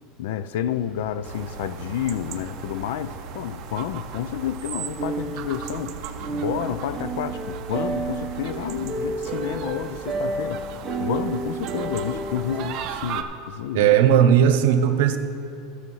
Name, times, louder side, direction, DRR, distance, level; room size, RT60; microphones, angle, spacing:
voice 1, 0.2-6.0 6.3-10.7 11.0-13.9, left 10 dB, 75° left, 14 dB, 0.4 m, -30 dB
sound 1, 0.7-8.4, right 1 dB, 5° left, 1.8 m, -43 dB
sound 2, 1.2-13.2, right 8 dB, 40° right, 0.6 m, -38 dB
sound 3, 5.0-12.8, right 3 dB, 10° right, 1.0 m, -31 dB
voice 2, 13.7-15.2, right 9 dB, 70° right, 9 dB, 0.8 m, -17 dB
13.5 x 6.6 x 5.5 m, 2.8 s
supercardioid pair, 175°, 0 cm